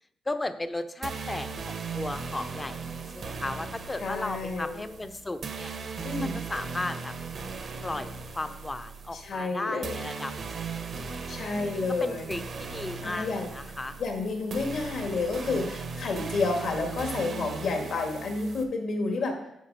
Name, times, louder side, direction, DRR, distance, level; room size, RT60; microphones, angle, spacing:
voice 1, 0.2-5.7 6.2-7.1 7.8-11.1 11.5-14.0, left 2 dB, 20° left, 10 dB, 0.7 m, -36 dB
sound 1, 1.0-18.6, right 5 dB, 60° right, 1.1 m, -38 dB
voice 2, 4.0-4.8 6.0-6.4 9.1-10.0 11.3-12.2 13.0-13.5 14.0-19.4, left 3 dB, 70° left, 3 dB, 1.8 m, -30 dB
8.5 x 5.0 x 5.4 m, 0.83 s
cardioid pair, 75°, 0 cm